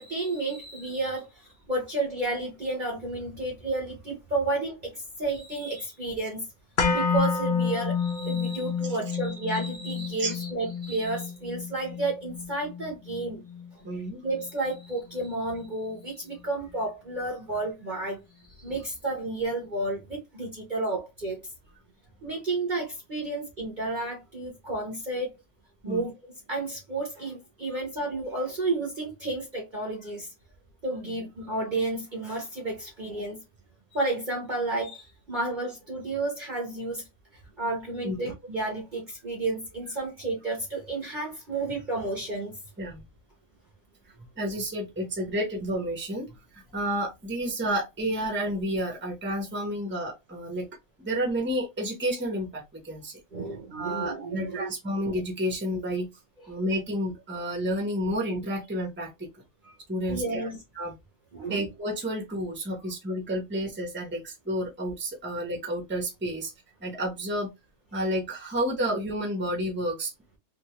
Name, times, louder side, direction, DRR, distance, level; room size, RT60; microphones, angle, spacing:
voice 1, 0.0-6.4 6.9-13.4 13.7-21.4 22.2-25.3 25.8-26.1 26.5-30.3 30.8-33.4 33.9-37.0 37.6-42.5 53.3-54.7 59.6-59.8 60.1-60.6 61.3-61.6, right 2 dB, 35° right, 1.0 m, -31 dB
sound 1, 6.8-14.8 15.2-15.3, left 5 dB, 45° left, 0.7 m, -30 dB
voice 2, 13.8-14.2 25.8-26.0 38.0-38.3 42.8-43.0 44.4-50.7 51.0-53.2 53.7-56.1 56.5-59.3 59.9-60.9 61.5-66.5 66.8-67.5 67.9-70.1, equal, 10° right, 0.9 m, -30 dB
3.5 x 2.6 x 3.0 m
omnidirectional pair, 1.6 m